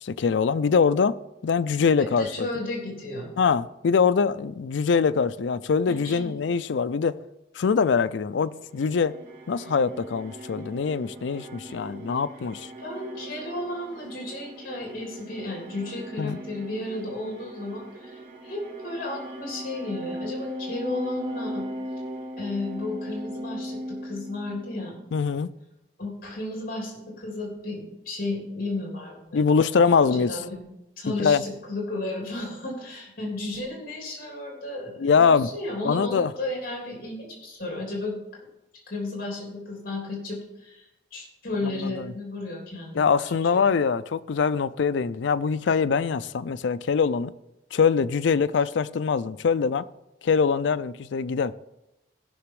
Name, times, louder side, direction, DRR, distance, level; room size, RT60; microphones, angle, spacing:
voice 1, 0.0-1.2 1.4-2.3 3.4-7.1 7.6-9.1 9.5-12.7 16.2-16.4 25.1-25.5 29.3-30.4 31.2-31.4 35.0-35.5 35.8-36.3 41.8-41.9 43.0-47.3 47.7-49.8 50.2-51.5, left 5 dB, 80° left, 0.4 m, -23 dB
voice 2, 2.0-3.3 5.9-6.3 12.8-21.6 22.4-25.0 26.0-29.4 29.8-30.6 31.0-38.2 38.9-43.6, left 2 dB, 50° left, 3.3 m, -33 dB
sound 1, 8.6-24.9, equal, 75° right, 2.2 m, -38 dB
15.0 x 6.0 x 4.8 m
head